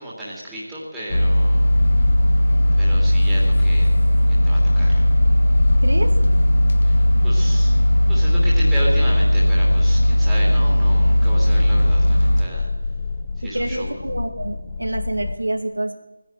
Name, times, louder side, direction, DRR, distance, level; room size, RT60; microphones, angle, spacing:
voice 1, 0.0-1.7 2.8-3.9 4.3-5.0 6.8-7.7 8.1-12.7 13.4-13.9, right 1 dB, 5° right, -8 dB, 2.8 m, -33 dB
sound 1, 1.1-12.4, equal, 50° left, 2.1 m, -17 dB
sound 2, 1.5-15.4, left 4 dB, 25° left, 0.9 m, -29 dB
voice 2, 13.4-15.9, right 1 dB, 85° right, 4 dB, 2.4 m, -27 dB
16.5 x 10.0 x 7.6 m, 1.1 s
figure-of-eight pair, 170°, 0 cm